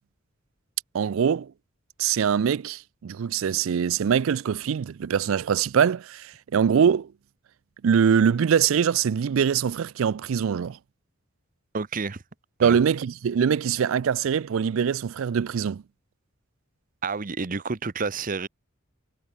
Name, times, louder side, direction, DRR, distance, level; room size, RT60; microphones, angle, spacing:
voice 1, 0.9-1.5 2.0-7.1 7.8-10.8 12.6-15.8, right 7 dB, 70° right, 0.4 m, -23 dB
voice 2, 11.7-12.2 12.6-12.8 17.0-18.5, right 4 dB, 40° right, 0.8 m, -29 dB
head